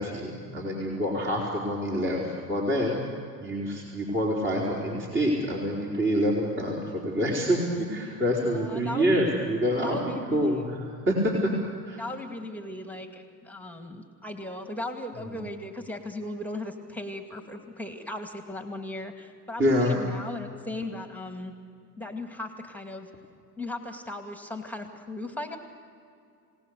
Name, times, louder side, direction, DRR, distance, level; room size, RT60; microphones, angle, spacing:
voice 1, 0.0-3.0 3.4-11.5 11.9-12.0 15.2-15.4 19.6-19.9, equal, 25° right, -3 dB, 4.7 m, -27 dB
voice 2, 8.5-9.3 9.8-10.7 12.0-21.5 22.0-23.1 23.6-25.6, left 1 dB, 5° left, 4 dB, 2.3 m, -37 dB
28.5 x 18.0 x 6.7 m, 2.4 s
hypercardioid pair, 90°, 47 cm